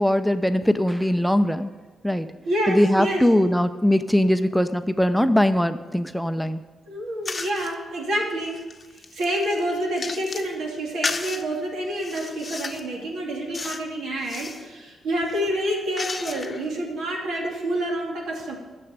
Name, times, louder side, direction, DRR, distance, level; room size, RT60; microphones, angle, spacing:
voice 1, 0.0-1.7 2.0-2.3 2.7-6.6, left 1 dB, ahead, 11 dB, 0.5 m, -21 dB
voice 2, 2.5-3.2 6.9-8.7 8.9-18.6, right 1 dB, 85° right, -1 dB, 2.7 m, -28 dB
sound 1, 7.2-7.7 8.3-10.5 11.0-11.4 12.0-12.9 13.5-13.9 14.2-14.7 15.2-16.7, left 4 dB, 30° left, 0.8 m, -33 dB
9.8 x 7.0 x 8.8 m, 1.3 s
cardioid pair, 100°, 0 cm